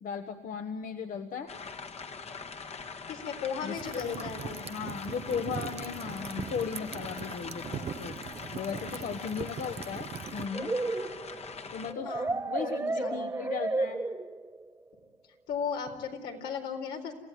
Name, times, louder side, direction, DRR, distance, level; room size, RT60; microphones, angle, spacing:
voice 1, 0.0-1.6 3.6-4.3 4.7-8.1 8.5-10.7 11.7-12.2 12.5-14.0, left 6 dB, 55° left, 6 dB, 1.5 m, -36 dB
sound 1, 1.5-11.9, left 5 dB, 40° left, 1.6 m, -42 dB
voice 2, 3.1-4.7 8.7-9.2 12.0-13.3 15.5-17.1, left 6 dB, 80° left, 3 dB, 4.1 m, -37 dB
sound 2, 3.8-10.5, right 7 dB, 35° right, 0.7 m, -41 dB
sound 3, 10.5-14.6, right 2 dB, 15° right, 1.3 m, -32 dB
28.0 x 16.0 x 9.5 m, 1.2 s
cardioid pair, 110°, 17 cm